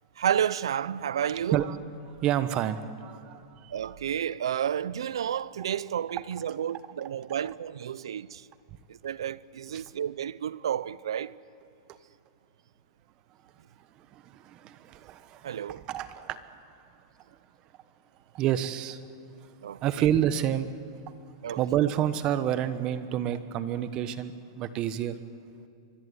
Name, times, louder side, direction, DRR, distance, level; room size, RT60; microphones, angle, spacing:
voice 1, 0.2-1.6 3.7-8.5 8.9-11.4 15.4-15.8 19.6-20.1 21.4-21.6, right 9 dB, 85° right, 0.7 m, -31 dB
voice 2, 1.2-1.8 2.2-3.9 6.3-6.4 6.7-6.8 7.4-7.5 9.7-9.8 11.9-12.0 13.8-16.8 17.3-17.4 18.3-19.0 19.4-19.5 19.8-20.7 21.6-25.2, right 11 dB, 30° right, 1.2 m, -29 dB
25.5 x 23.5 x 9.6 m
supercardioid pair, 150°, 3 cm